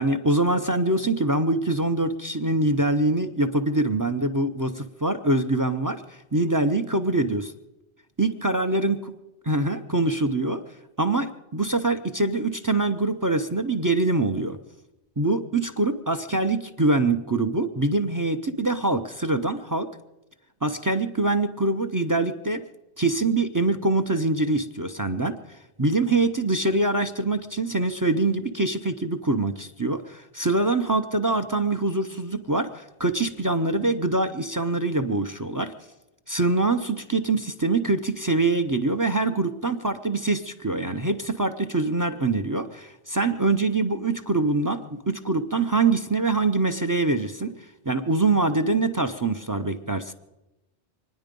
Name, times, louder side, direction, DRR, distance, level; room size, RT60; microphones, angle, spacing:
voice 1, 0.0-7.5 8.2-9.0 9.5-10.6 11.0-14.6 15.2-19.9 20.6-22.6 23.0-25.4 25.8-35.7 36.3-47.5 47.9-50.1, right 2 dB, 25° right, 11 dB, 0.4 m, -24 dB
25.0 x 10.0 x 5.2 m, 0.97 s
omnidirectional pair, 1.2 m